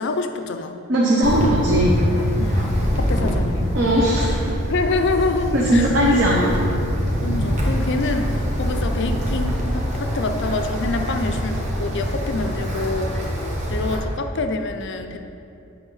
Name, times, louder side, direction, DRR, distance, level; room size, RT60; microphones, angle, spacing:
voice 1, 0.0-0.8 2.4-3.8 4.7-5.9 7.2-13.1 13.7-15.2, left 3 dB, 55° left, 7 dB, 0.5 m, -26 dB
voice 2, 0.9-2.0 3.7-4.3 5.5-6.5, right 1 dB, 55° right, -5 dB, 1.0 m, -18 dB
Wind, 1.2-14.0, equal, 30° right, 1.3 m, -24 dB
8.9 x 5.8 x 4.0 m, 2.6 s
head